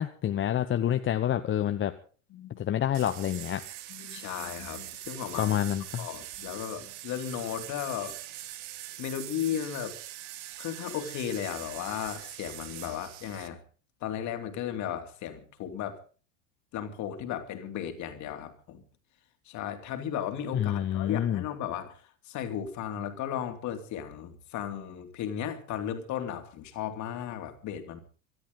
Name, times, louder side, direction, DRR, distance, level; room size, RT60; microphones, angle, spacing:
voice 1, 0.0-1.9 2.6-3.6 5.4-6.1 20.5-21.4, left 11 dB, 30° left, 1.1 m, -28 dB
voice 2, 2.3-2.7 3.9-5.6 6.0-8.2 9.0-9.9 10.6-13.6 14.0-16.0 16.7-18.8 19.5-28.0, left 9 dB, 45° left, 2.8 m, -35 dB
sound 1, 2.9-13.5, right 14 dB, 55° right, 1.8 m, -43 dB
24.5 x 13.0 x 3.9 m
hypercardioid pair, 85°, 39 cm